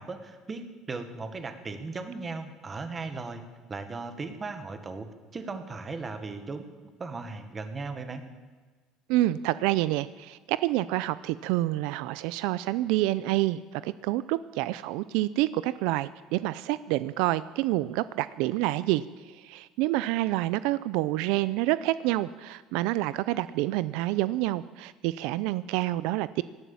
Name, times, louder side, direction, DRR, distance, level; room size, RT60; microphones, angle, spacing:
voice 1, 0.0-3.4 3.7-6.7 7.0-8.2, right 3 dB, 20° right, 9 dB, 1.5 m, -37 dB
voice 2, 9.1-19.0 19.3-26.4, right 16 dB, 75° right, 16 dB, 0.4 m, -28 dB
18.0 x 11.0 x 7.1 m, 1.4 s
cardioid pair, 155°, 0 cm